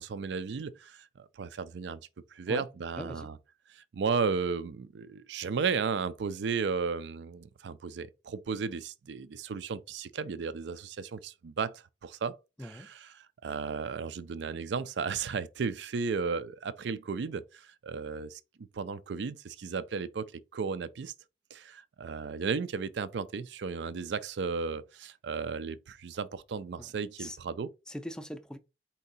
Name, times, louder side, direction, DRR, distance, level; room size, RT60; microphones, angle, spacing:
voice 1, 0.0-3.4 3.7-21.1 21.5-27.7, right 5 dB, 75° right, 0.4 m, -34 dB
voice 2, 3.0-3.3 12.6-12.9 26.8-26.9 27.2-27.4 27.9-28.6, equal, 5° left, 0.4 m, -40 dB
4.5 x 2.8 x 4.0 m
head